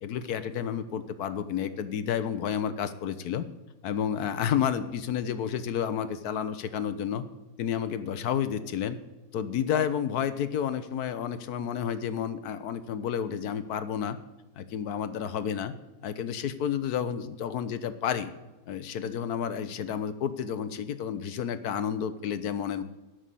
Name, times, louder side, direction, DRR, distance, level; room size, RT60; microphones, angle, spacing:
voice 1, 0.0-3.5 3.8-7.2 7.6-9.0 9.3-14.2 14.5-15.7 16.0-18.3 18.7-22.8, left 8 dB, 70° left, 12 dB, 1.2 m, -30 dB
11.0 x 6.5 x 8.3 m, 1.1 s
omnidirectional pair, 1.8 m